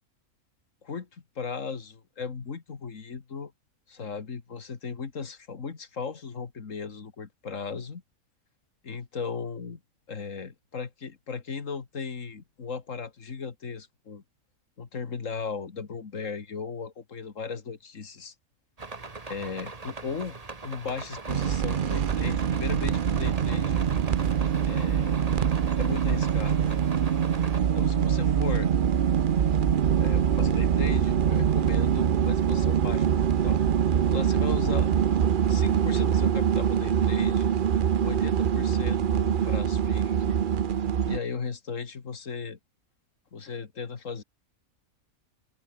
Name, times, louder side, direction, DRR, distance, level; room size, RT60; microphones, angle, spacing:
voice 1, 0.8-3.5 3.9-8.0 8.8-9.8 10.1-14.2 14.8-18.3 19.2-20.4 20.6-23.8 24.7-25.2 25.8-26.7 27.6-28.7 30.0-33.1 33.4-33.6 34.1-34.9 35.5-37.5 38.0-40.4 41.0-42.6 43.3-44.2, left 5 dB, 65° left, 2.2 m, -36 dB
sound 1, 18.8-27.6, right 3 dB, 25° right, 1.6 m, -41 dB
sound 2, 21.3-41.2, right 8 dB, 50° right, 0.7 m, -24 dB
open air
omnidirectional pair, 1.5 m